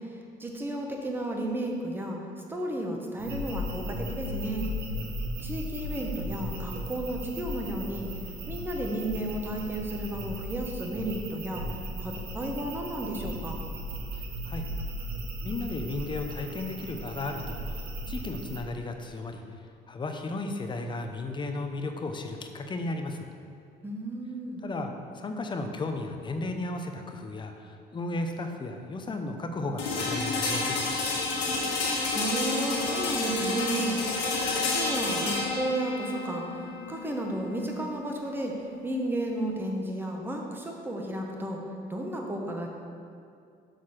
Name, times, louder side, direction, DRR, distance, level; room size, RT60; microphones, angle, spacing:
voice 1, 0.4-2.2 2.5-4.7 5.4-8.1 8.5-11.6 12.0-13.6 23.8-24.6 32.1-34.0 34.7-36.4 36.9-38.5 38.8-41.6 41.9-42.7, right 1 dB, 10° right, 1 dB, 1.0 m, -33 dB
sound 1, 3.2-18.6, equal, 70° right, 1.2 m, -36 dB
voice 2, 15.4-17.8 18.1-19.4 19.9-23.3 24.6-24.9 25.1-31.0, left 2 dB, 30° left, 5 dB, 0.7 m, -34 dB
sound 2, 29.8-39.7, left 3 dB, 90° left, 1.4 m, -30 dB
6.5 x 3.9 x 6.3 m, 2.4 s
cardioid pair, 110°, 17 cm